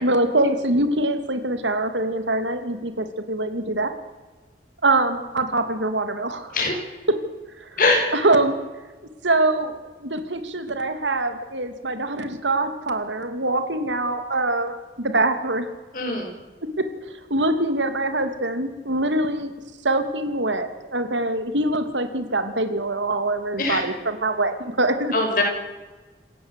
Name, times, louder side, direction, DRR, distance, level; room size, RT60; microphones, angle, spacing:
voice 1, 0.0-3.9 4.8-6.5 7.6-7.7 8.1-8.6 9.2-15.7 16.6-19.5 19.8-25.1, right 2 dB, 90° right, 8 dB, 2.8 m, -24 dB
voice 2, 7.8-8.1 15.9-16.3 23.6-23.8 25.1-25.4, left 2 dB, 50° left, 2 dB, 6.2 m, -21 dB
27.5 x 15.5 x 8.4 m, 1.3 s
head